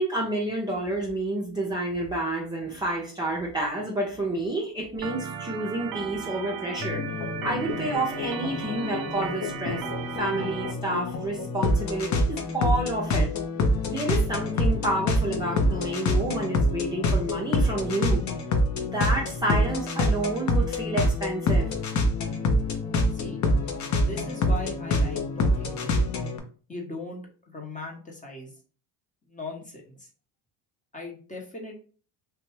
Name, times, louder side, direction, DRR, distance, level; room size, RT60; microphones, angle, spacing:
voice 1, 0.0-9.8 10.1-13.3 13.9-18.2 18.7-21.7, right 1 dB, 10° right, -4 dB, 0.6 m, -29 dB
Organ, 5.0-10.7, right 8 dB, 55° right, 0.5 m, -36 dB
sound 1, 6.8-26.4, left 1 dB, 40° left, 0.6 m, -26 dB
voice 2, 24.0-26.1 26.7-28.5 29.3-30.1 30.9-31.8, left 2 dB, 15° left, 0 dB, 0.9 m, -39 dB
2.6 x 2.2 x 3.1 m, 0.39 s
supercardioid pair, 90°, 45 cm